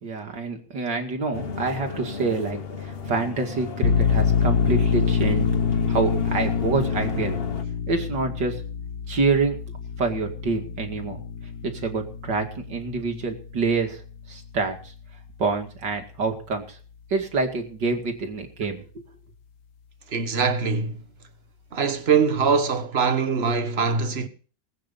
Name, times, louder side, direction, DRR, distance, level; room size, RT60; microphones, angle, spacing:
voice 1, 0.0-5.5 5.9-7.4 7.9-8.5 9.1-9.6 10.0-11.2 11.6-14.0 14.3-14.8 15.4-16.8 17.1-18.8, right 4 dB, 75° right, 3.0 m, -26 dB
sound 1, 1.3-7.6, left 5 dB, 35° left, 1.3 m, -34 dB
sound 2, 3.8-15.1, left 6 dB, 70° left, 1.6 m, -26 dB
voice 2, 20.1-21.0 21.7-24.3, right 5 dB, 40° right, 1.4 m, -22 dB
20.0 x 9.1 x 5.4 m
omnidirectional pair, 1.9 m